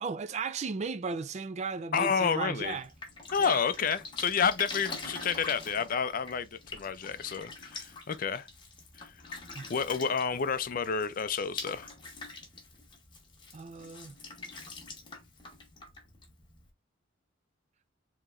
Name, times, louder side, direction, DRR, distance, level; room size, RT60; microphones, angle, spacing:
voice 1, 0.0-2.9 3.4-3.6 9.5-9.6 13.5-14.2, right 4 dB, 35° right, 0.3 m, -35 dB
voice 2, 1.9-2.8 3.3-8.5 9.0-9.4 9.7-11.9, left 6 dB, 45° left, 0.4 m, -30 dB
Drip, 2.6-16.7, left 3 dB, 25° left, 1.0 m, -45 dB
4.7 x 2.9 x 2.5 m
head